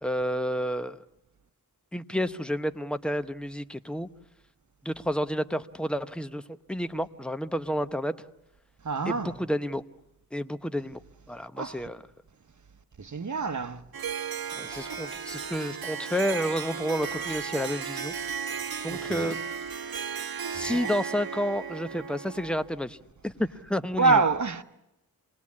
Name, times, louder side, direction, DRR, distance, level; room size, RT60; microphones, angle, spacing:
voice 1, 0.0-1.0 1.9-4.1 4.8-6.4 6.7-8.1 9.1-9.8 10.3-11.0 11.3-12.0 14.5-18.1 18.8-19.4 20.5-23.0 23.2-24.2, equal, 5° left, 0.8 m, -30 dB
voice 2, 8.8-9.3 11.6-11.9 13.0-13.8 18.9-19.4 20.5-20.9 24.0-24.6, right 4 dB, 55° right, 1.2 m, -27 dB
Harp, 13.9-22.7, right 7 dB, 80° right, 1.1 m, -35 dB
26.5 x 20.0 x 8.6 m
wide cardioid pair, 80°, 36 cm